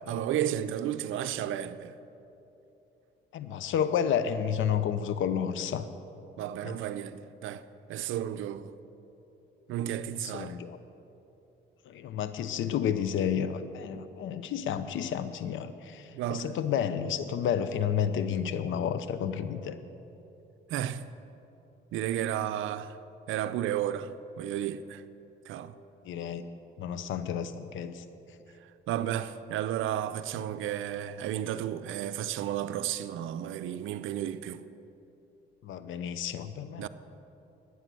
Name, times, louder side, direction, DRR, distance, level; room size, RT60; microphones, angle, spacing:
voice 1, 0.1-1.9 6.4-7.6 7.9-8.7 9.7-10.6 16.1-16.6 20.7-21.1 21.9-23.0 23.3-25.0 25.5-25.7 28.9-34.6 36.8-36.9, right 11 dB, 85° right, 0.6 m, -33 dB
voice 2, 3.3-5.9 6.6-6.8 10.2-10.8 11.8-19.8 26.0-26.5 26.8-28.0 35.6-36.9, left 8 dB, 80° left, 0.8 m, -31 dB
13.0 x 9.7 x 7.7 m
cardioid pair, 90°, 20 cm